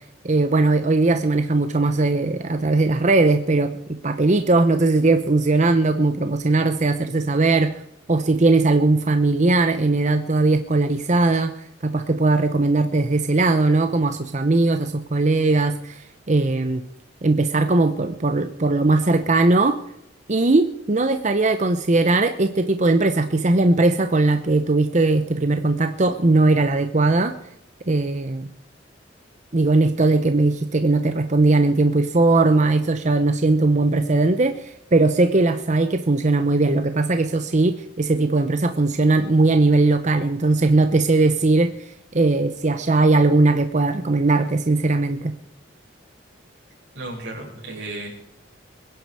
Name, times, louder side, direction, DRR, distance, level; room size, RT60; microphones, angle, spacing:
voice 1, 0.2-7.8 8.1-16.8 17.2-19.8 20.3-27.3 27.9-28.5 29.5-45.4, right 2 dB, 40° right, 9 dB, 0.8 m, -19 dB
voice 2, 46.9-48.1, right 2 dB, 90° right, -3 dB, 6.4 m, -34 dB
22.0 x 10.5 x 4.8 m, 0.80 s
head